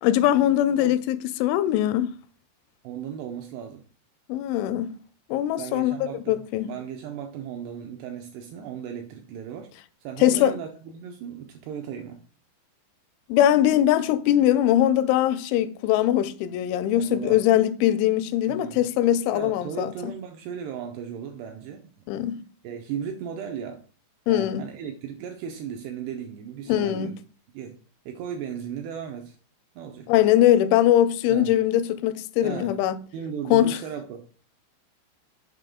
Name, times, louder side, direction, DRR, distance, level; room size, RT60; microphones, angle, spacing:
voice 1, 0.0-2.1 4.3-4.9 5.3-5.9 6.3-6.7 10.2-10.6 13.3-20.1 22.1-22.4 24.3-24.6 26.7-27.1 30.1-33.0 33.5-33.8, left 12 dB, 90° left, 3.0 m, -21 dB
voice 2, 2.8-3.8 5.6-9.7 10.0-12.2 16.9-17.4 18.5-18.9 19.3-22.1 22.6-23.9 24.3-27.2 27.5-27.8 28.1-29.4 29.8-30.1 31.3-31.6 32.4-32.8 33.1-34.3, right 8 dB, 80° right, 2.4 m, -36 dB
6.7 x 5.2 x 3.6 m
omnidirectional pair, 5.3 m